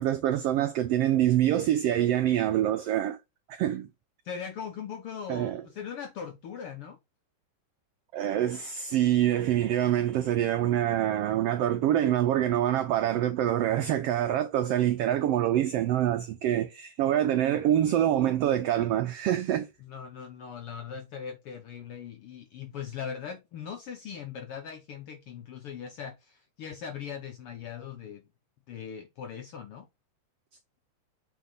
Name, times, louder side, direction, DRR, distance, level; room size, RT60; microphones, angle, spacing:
voice 1, 0.0-3.2 3.5-3.9 5.3-5.6 8.1-19.7, right 12 dB, 85° right, 1.3 m, -25 dB
voice 2, 4.2-7.0 19.8-28.2 28.7-29.9, left 7 dB, 70° left, 1.3 m, -40 dB
8.1 x 4.4 x 4.0 m
omnidirectional pair, 3.5 m